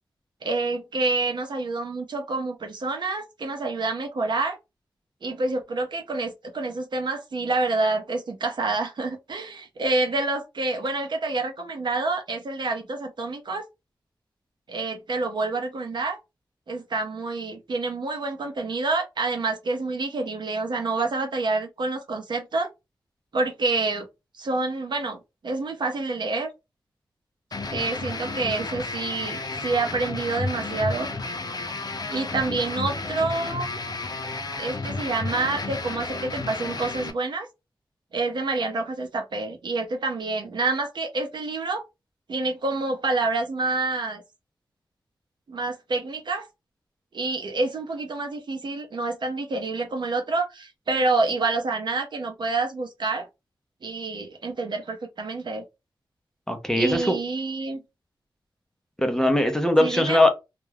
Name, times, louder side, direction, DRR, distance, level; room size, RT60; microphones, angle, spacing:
voice 1, 0.4-4.6 5.2-13.6 14.7-16.2 16.7-22.7 23.3-24.1 24.4-26.5 27.7-31.1 32.1-33.8 34.6-37.5 38.1-41.9 42.3-44.2 45.5-46.5 47.1-53.3 53.8-55.6 56.8-57.8 59.8-60.2, right 3 dB, 60° right, 0.7 m, -27 dB
sound 1, 27.5-37.1, left 3 dB, 50° left, 0.6 m, -32 dB
voice 2, 56.5-57.2 59.0-60.3, left 1 dB, 5° left, 0.6 m, -20 dB
2.3 x 2.1 x 3.2 m
wide cardioid pair, 85°, 9 cm